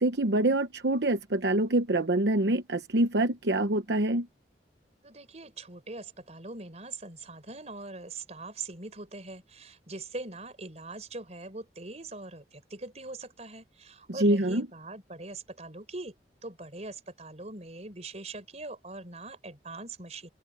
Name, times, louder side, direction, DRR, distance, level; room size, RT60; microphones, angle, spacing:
voice 1, 0.0-4.3 14.1-14.7, right 1 dB, 75° right, 1.0 m, -25 dB
voice 2, 5.0-16.1 16.4-20.3, right 2 dB, 40° right, 4.5 m, -42 dB
head